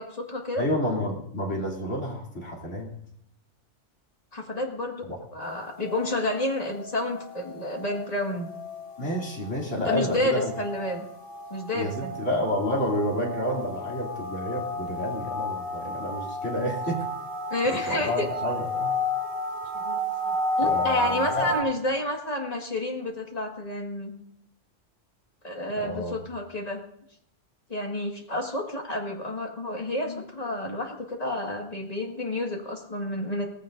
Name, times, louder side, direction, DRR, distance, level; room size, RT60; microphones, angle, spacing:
voice 1, 0.0-0.7 4.3-5.1 5.3-8.5 9.8-11.1 11.5-12.1 16.5-16.7 17.5-18.5 19.7-20.0 20.2-24.1 25.4-26.8 27.7-33.5, left 1 dB, 35° left, 1 dB, 1.9 m, -30 dB
voice 2, 0.6-2.9 5.1-5.2 9.0-10.5 11.7-17.0 17.9-18.9 20.6-21.5 25.8-26.2, left 1 dB, 85° left, -2 dB, 3.3 m, -29 dB
sound 1, 5.4-21.6, left 1 dB, 40° right, 4.9 m, -32 dB
18.5 x 15.0 x 2.6 m, 0.72 s
omnidirectional pair, 1.2 m